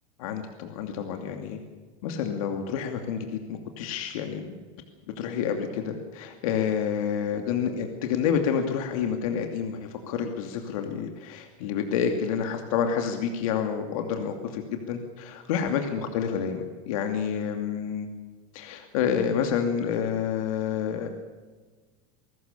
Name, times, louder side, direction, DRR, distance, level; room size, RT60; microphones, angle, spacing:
voice 1, 0.2-1.6 2.0-4.6 5.2-18.1 18.5-21.1, left 7 dB, 70° left, 5 dB, 2.6 m, -29 dB
22.5 x 18.5 x 6.9 m, 1.4 s
supercardioid pair, 175°, 19 cm